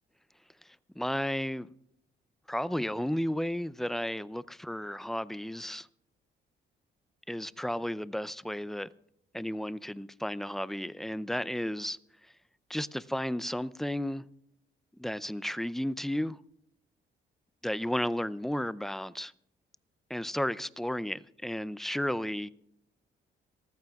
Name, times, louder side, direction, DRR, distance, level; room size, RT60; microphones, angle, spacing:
voice 1, 1.0-1.7 2.5-5.9 7.3-8.9 9.3-12.0 12.7-14.2 15.0-16.4 17.6-19.3 20.1-22.5, equal, ahead, 0.5 m, -33 dB
26.5 x 14.5 x 2.4 m
cardioid pair, 90°, 20 cm